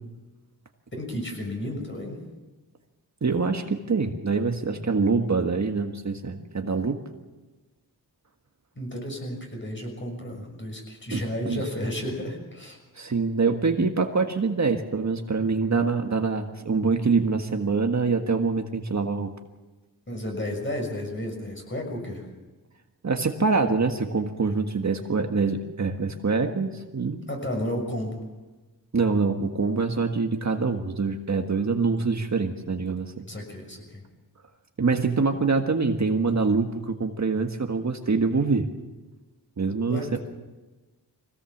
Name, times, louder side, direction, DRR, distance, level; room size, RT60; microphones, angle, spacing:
voice 1, 1.0-2.2 8.8-12.8 20.1-22.2 27.3-28.2 33.3-34.0 39.9-40.2, left 1 dB, 30° left, 2 dB, 6.4 m, -32 dB
voice 2, 3.2-7.0 11.1-11.6 13.0-19.3 23.0-27.2 28.9-33.3 34.8-38.7 39.6-40.2, right 4 dB, 45° right, 4 dB, 1.6 m, -25 dB
24.0 x 17.5 x 7.3 m, 1.2 s
wide cardioid pair, 100°, 39 cm